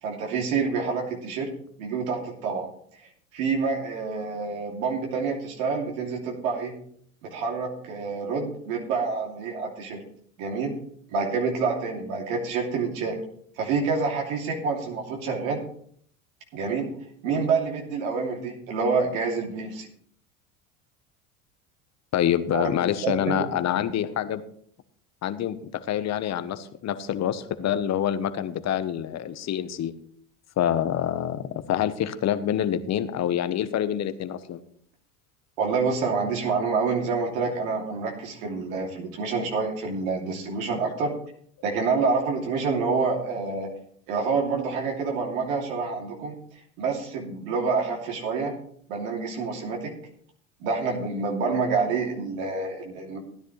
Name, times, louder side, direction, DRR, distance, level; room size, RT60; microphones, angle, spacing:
voice 1, 0.0-1.5 1.8-2.7 3.3-6.7 7.3-10.0 10.4-10.7 11.1-13.2 13.6-15.6 16.5-16.9 17.2-19.9 22.5-22.7 23.0-23.8 35.6-41.1 41.6-43.7 44.1-46.4 46.8-48.5 48.9-49.9 50.6-53.2, right 4 dB, 75° right, 0 dB, 2.9 m, -27 dB
voice 2, 22.1-24.4 25.2-30.0 30.6-34.6, left 10 dB, 40° left, 12 dB, 1.1 m, -26 dB
15.5 x 10.0 x 3.3 m, 0.62 s
hypercardioid pair, 85°, 42 cm